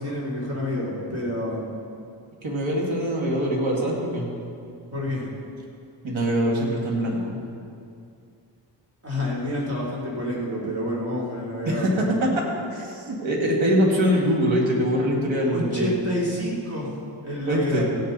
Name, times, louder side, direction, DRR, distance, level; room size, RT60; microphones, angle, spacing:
voice 1, 0.0-1.6 4.9-5.3 9.0-12.1 15.4-16.9 17.2-17.8, left 1 dB, 30° right, -6 dB, 3.6 m, -28 dB
voice 2, 2.4-4.3 6.0-7.4 11.7-12.4 12.7-15.9 17.5-17.8, equal, 80° right, -2 dB, 2.4 m, -23 dB
15.5 x 10.0 x 4.1 m, 2.4 s
wide cardioid pair, 100°, 45 cm